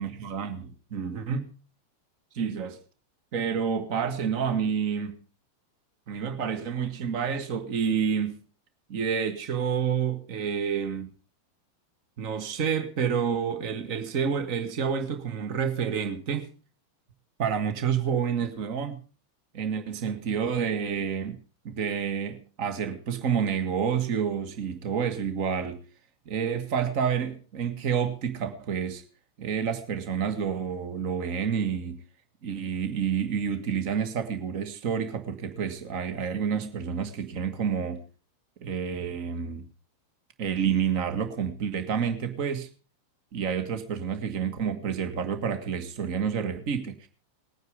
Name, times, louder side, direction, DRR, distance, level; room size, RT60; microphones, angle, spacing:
voice 1, 0.0-1.4 2.3-2.8 3.3-5.2 6.1-8.4 8.9-11.1 12.2-16.5 17.4-19.0 19.5-21.4 21.6-25.8 26.3-29.0 29.4-32.0 32.4-38.0 38.6-39.6 40.4-42.7 43.3-47.1, right 7 dB, 45° right, 1.9 m, -29 dB
20.0 x 9.4 x 5.4 m
figure-of-eight pair, 90°, 0 cm